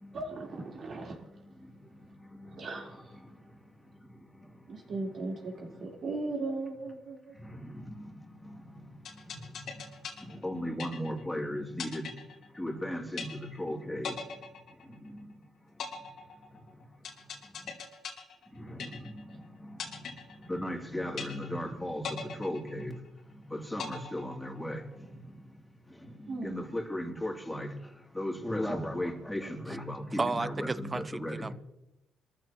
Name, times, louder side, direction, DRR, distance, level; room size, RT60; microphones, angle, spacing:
voice 1, 0.1-1.2 2.5-3.0 4.7-7.3 26.3-26.6, right 3 dB, 55° right, 4.1 m, -37 dB
sound 1, 9.0-11.3 11.8-12.8 13.2-13.7 14.0-15.3 15.8-19.3 19.8-20.8 21.2-21.7 22.0-23.3 23.8-24.8, left 6 dB, 70° left, 3.2 m, -41 dB
voice 2, 10.4-12.1 12.6-14.1 20.5-22.9 23.5-24.8 26.4-27.7 28.2-31.4, left 1 dB, 10° left, 3.0 m, -35 dB
voice 3, 30.2-31.5, right 3 dB, 25° right, 0.6 m, -33 dB
26.5 x 14.0 x 3.1 m
cardioid pair, 90°, 0 cm